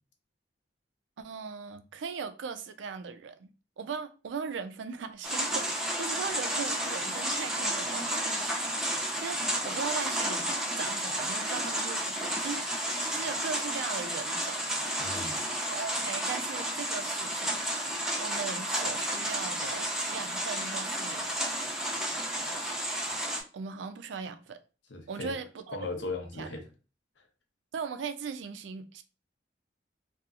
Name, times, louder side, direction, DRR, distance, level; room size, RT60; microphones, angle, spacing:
voice 1, 1.2-3.5 3.8-8.5 9.2-12.7 13.1-14.6 15.7-17.6 18.2-21.3 23.5-24.6 25.1-25.8 26.4-26.5 27.7-29.0, right 5 dB, 90° right, 0.4 m, -39 dB
sound 1, 5.2-23.4, right 1 dB, 5° right, 0.5 m, -32 dB
voice 2, 15.0-15.4 24.9-25.3 25.7-26.6, left 3 dB, 80° left, 0.7 m, -37 dB
2.8 x 2.3 x 2.3 m
head